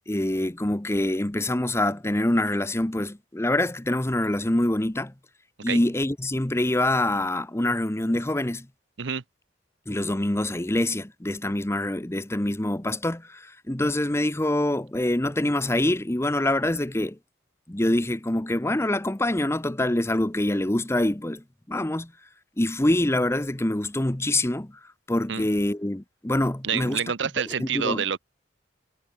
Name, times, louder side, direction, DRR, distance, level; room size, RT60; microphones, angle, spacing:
voice 1, 0.1-5.1 5.6-8.7 9.9-17.2 17.7-22.1 22.6-24.7 25.1-27.0 27.6-28.0, left 1 dB, 15° left, 0.9 m, -25 dB
voice 2, 26.6-28.2, right 7 dB, 75° right, 0.8 m, -28 dB
head